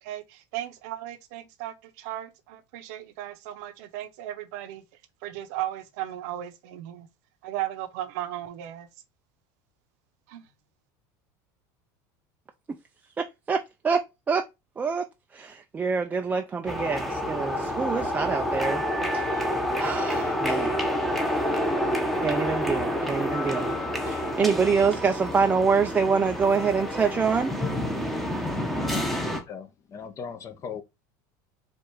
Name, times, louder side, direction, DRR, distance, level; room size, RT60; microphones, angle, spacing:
voice 1, 0.0-4.8 5.2-7.1 7.4-8.9 10.3-10.4, right 13 dB, 75° right, 0.8 m, -36 dB
voice 2, 13.2-14.4 14.8-15.1 15.3-18.8 19.1-20.8 22.2-23.8 24.1-27.5, right 5 dB, 20° right, 0.4 m, -26 dB
sound 1, 16.7-29.4, equal, ahead, 0.9 m, -28 dB
voice 3, 28.8-30.8, left 6 dB, 35° left, 0.8 m, -39 dB
4.4 x 2.5 x 4.6 m
supercardioid pair, 125°, 9 cm